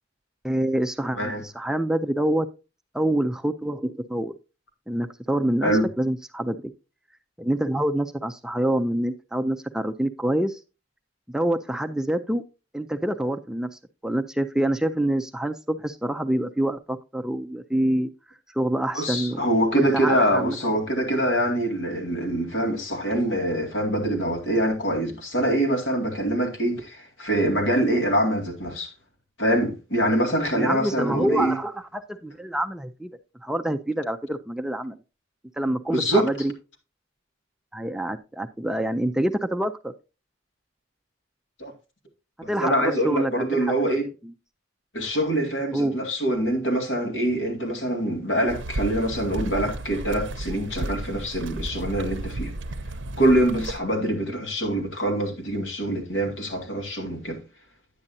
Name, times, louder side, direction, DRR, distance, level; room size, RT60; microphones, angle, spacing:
voice 1, 0.4-2.5 2.9-4.3 4.9-5.7 6.0-6.6 7.4-10.6 11.3-12.4 12.7-13.7 14.0-18.1 18.5-19.5 19.7-20.6 30.5-33.1 33.4-35.0 35.6-36.5 37.7-39.9 42.5-43.7 44.2-44.3 45.7-46.0, right 1 dB, 5° right, 0.4 m, -26 dB
voice 2, 18.9-28.9 29.4-31.6 35.9-36.3 41.6-41.7 42.6-44.1 44.9-52.5 53.2-57.4, right 1 dB, 75° left, 2.3 m, -24 dB
sound 1, 48.5-53.8, right 2 dB, 80° right, 0.6 m, -33 dB
9.7 x 8.6 x 2.7 m
head